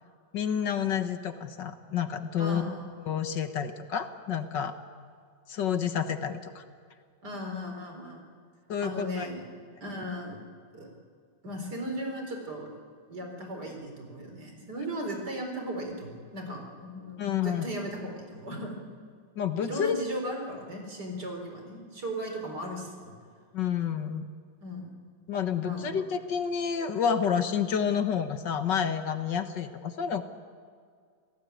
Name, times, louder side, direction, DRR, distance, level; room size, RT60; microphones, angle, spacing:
voice 1, 0.3-2.6 3.1-4.7 5.5-6.6 8.7-9.3 17.2-17.7 19.4-20.0 23.5-24.3 25.3-30.2, left 7 dB, 70° left, 8 dB, 1.9 m, -29 dB
voice 2, 2.4-2.9 7.2-8.3 8.8-9.4 9.8-10.4 10.7-10.9 11.4-12.7 13.1-18.8 19.6-23.1 24.6-25.0 25.6-26.0, equal, 60° right, 3 dB, 4.8 m, -37 dB
28.5 x 18.0 x 9.3 m, 2.1 s
omnidirectional pair, 2.0 m